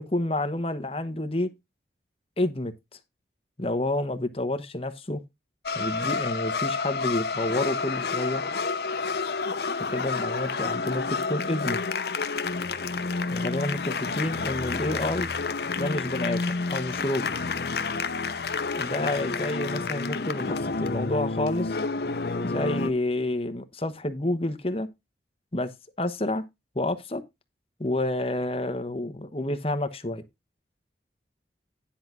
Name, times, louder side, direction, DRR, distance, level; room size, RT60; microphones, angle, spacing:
voice 1, 0.0-1.5 2.4-2.7 3.6-5.2 5.7-8.4 9.9-11.8 13.3-15.3 15.8-17.3 18.8-21.8 22.4-24.9 25.5-25.7 26.0-26.4 26.7-27.2 27.8-30.2, left 1 dB, 30° left, 1.0 m, -29 dB
sound 1, 5.7-22.9, left 4 dB, 60° left, 0.7 m, -29 dB
10.0 x 4.0 x 6.0 m
head